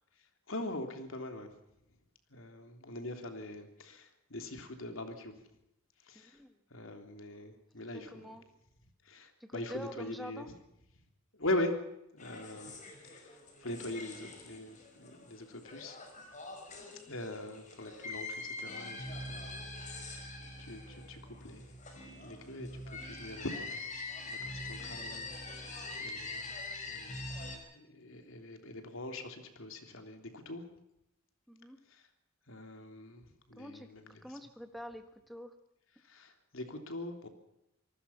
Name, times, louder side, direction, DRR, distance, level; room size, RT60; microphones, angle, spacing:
voice 1, 0.5-1.5 2.3-5.4 6.1-6.4 6.7-8.4 9.0-10.4 11.3-11.8 12.1-12.7 13.0-13.4 13.6-16.0 17.1-23.9 24.2-26.5 26.9-27.4 27.7-30.7 32.5-34.1 36.1-37.3, left 1 dB, 65° left, 6 dB, 3.3 m, -42 dB
voice 2, 6.1-6.6 7.9-8.4 9.4-10.5 16.8-17.1 31.5-31.8 33.5-35.5, equal, ahead, 8 dB, 1.6 m, -47 dB
sound 1, 12.2-27.6, left 2 dB, 35° left, 5.4 m, -44 dB
27.0 x 19.0 x 5.8 m, 0.82 s
head